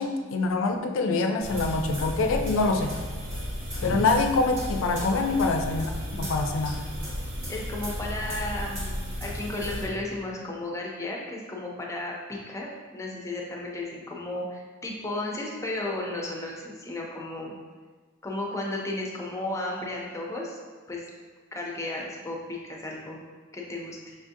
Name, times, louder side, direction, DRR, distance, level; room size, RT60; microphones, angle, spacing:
voice 1, 0.0-3.0 3.8-6.8, left 3 dB, 75° left, 5 dB, 0.4 m, -25 dB
sound 1, 1.4-9.9, equal, 70° right, 1.0 m, -34 dB
voice 2, 3.8-4.1 7.5-12.7 12.9-17.5 18.2-20.6 20.9-21.0 21.5-23.2 23.5-24.1, left 2 dB, 15° left, -2 dB, 0.5 m, -34 dB
5.6 x 2.4 x 2.6 m, 1.4 s
head